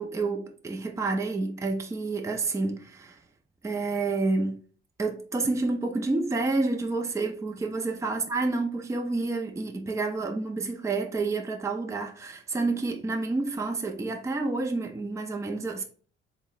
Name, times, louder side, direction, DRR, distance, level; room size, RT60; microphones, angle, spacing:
voice 1, 0.0-3.2 3.6-4.6 5.0-15.8, right 3 dB, 15° right, 0.5 m, -29 dB
3.7 x 2.2 x 3.8 m
cardioid pair, 90°, 20 cm